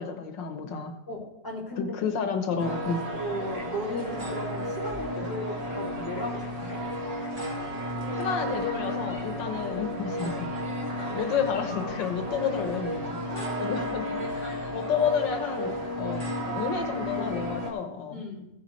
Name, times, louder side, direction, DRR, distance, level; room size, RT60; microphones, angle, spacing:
voice 1, 0.0-0.9 1.8-3.1 8.2-10.5 11.1-13.2 13.6-18.2, left 6 dB, 85° left, 6 dB, 1.7 m, -30 dB
voice 2, 1.1-2.0 3.0-6.8 10.2-10.4 13.3-13.7 18.1-18.5, equal, 10° left, -4 dB, 2.1 m, -36 dB
sound 1, 2.6-17.7, equal, 20° right, 1.5 m, -33 dB
15.0 x 8.2 x 3.1 m, 0.88 s
omnidirectional pair, 1.9 m